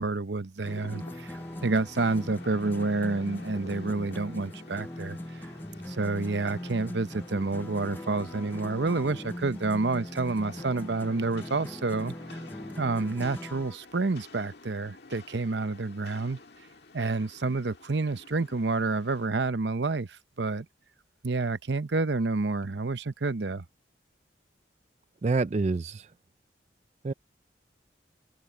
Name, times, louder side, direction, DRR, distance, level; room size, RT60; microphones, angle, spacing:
voice 1, 0.0-5.5 5.9-12.4 12.8-16.4 16.9-20.7 21.2-23.6, right 3 dB, 70° right, 0.8 m, -29 dB
Rain, 0.6-19.3, left 3 dB, 65° left, 1.9 m, -50 dB
sound 1, 0.6-13.8, left 1 dB, 10° left, 0.6 m, -40 dB
voice 2, 25.2-26.1 27.0-27.1, right 3 dB, 40° right, 0.4 m, -27 dB
head